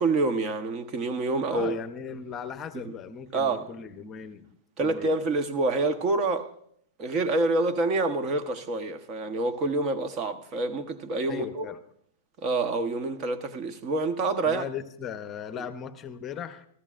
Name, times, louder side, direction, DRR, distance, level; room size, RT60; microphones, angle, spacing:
voice 1, 0.0-1.8 2.8-2.9 3.3-3.7 4.8-6.5 7.0-11.7 12.4-14.6 15.6-15.7, right 3 dB, 35° right, 1.1 m, -27 dB
voice 2, 1.5-5.2 11.3-11.8 14.5-16.7, left 7 dB, 25° left, 0.9 m, -38 dB
25.0 x 14.5 x 2.5 m
hypercardioid pair, 130°, 0 cm